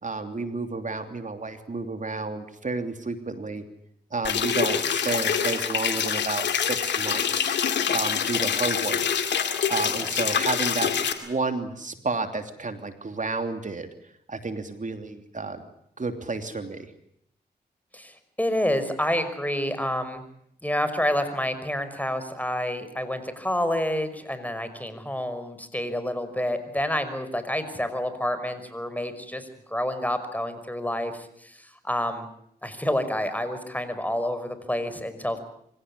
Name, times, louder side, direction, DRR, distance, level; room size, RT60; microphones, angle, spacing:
voice 1, 0.0-3.6 4.1-7.5 7.9-9.2 9.7-10.9 11.2-13.9 14.3-15.6 16.0-16.9, right 3 dB, 45° right, 7 dB, 3.1 m, -31 dB
sound 1, 4.2-11.1, left 8 dB, 85° left, 2.3 m, -25 dB
voice 2, 17.9-20.2 20.6-32.3 32.6-35.4, left 1 dB, 10° left, 11 dB, 5.5 m, -28 dB
25.0 x 16.5 x 9.9 m, 0.72 s
supercardioid pair, 40°, 18 cm